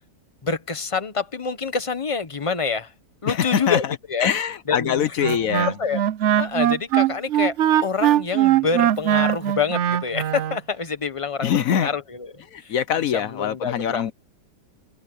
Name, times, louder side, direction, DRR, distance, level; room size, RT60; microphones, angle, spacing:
voice 1, 0.4-2.9 3.2-3.8 4.1-4.3 4.7-5.1 5.8-6.0 6.4-12.3 12.6-12.7 13.1-14.1, left 5 dB, 20° left, 1.0 m, -26 dB
voice 2, 3.3-5.8 11.4-11.9 12.5-14.1, left 9 dB, 60° left, 1.0 m, -23 dB
Wind instrument woodwind instrument, 5.2-10.6, right 11 dB, 75° right, 0.6 m, -20 dB
omnidirectional pair, 1.9 m